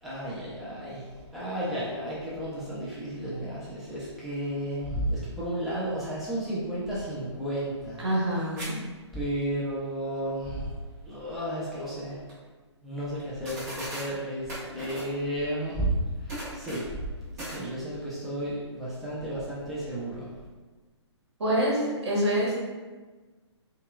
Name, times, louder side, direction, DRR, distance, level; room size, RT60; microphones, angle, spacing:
voice 1, 0.0-8.1 9.1-10.7 11.0-12.2 12.8-16.9 17.3-20.3, right 1 dB, ahead, -10 dB, 0.6 m, -33 dB
voice 2, 8.0-8.7 21.4-22.5, equal, 65° right, -5 dB, 1.5 m, -26 dB
sound 1, 8.6-8.7 9.0-9.1 11.9-12.0 12.3-12.4 13.2-13.3 13.5-14.1 14.5-15.1 16.3-17.0 17.4-17.6, right 1 dB, 35° right, 1.3 m, -37 dB
5.4 x 2.4 x 2.4 m, 1.3 s
figure-of-eight pair, 130°, 15 cm